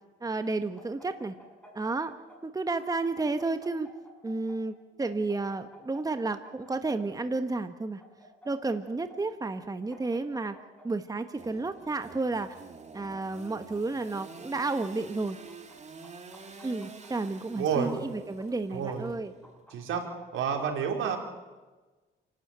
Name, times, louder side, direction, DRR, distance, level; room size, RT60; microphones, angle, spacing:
voice 1, 0.2-1.4 1.7-2.1 2.4-3.9 4.2-8.0 8.4-10.6 10.8-12.5 12.9-15.4 16.6-19.3, right 3 dB, 20° right, 9 dB, 1.2 m, -31 dB
sound 1, 0.8-2.4 2.7-4.6 5.0-7.2 8.0-9.2 9.4-9.5 9.9-10.9 11.4-12.5 13.1-14.0 14.8-15.8 16.0-17.3 17.9-18.9 19.4-20.4, equal, 5° left, 8.0 m, -53 dB
Engine / Sawing, 11.4-19.6, right 4 dB, 35° right, 2.6 m, -49 dB
voice 2, 17.6-17.9 18.7-19.1 19.7-20.1 20.3-21.2, right 7 dB, 80° right, 2 dB, 4.3 m, -29 dB
28.5 x 12.5 x 8.9 m, 1.2 s
cardioid pair, 90°, 20 cm